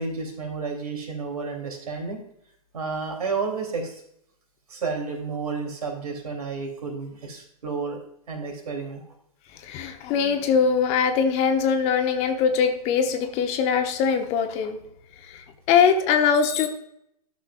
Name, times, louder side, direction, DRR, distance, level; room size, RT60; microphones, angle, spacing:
voice 1, 0.0-2.2 2.7-4.0 4.7-8.0 8.3-9.1, right 4 dB, 75° right, 2 dB, 3.0 m, -31 dB
voice 2, 9.6-14.8 15.3-16.7, left 6 dB, 35° left, 6 dB, 1.0 m, -22 dB
12.5 x 6.6 x 2.4 m, 0.73 s
hypercardioid pair, 120°, 20 cm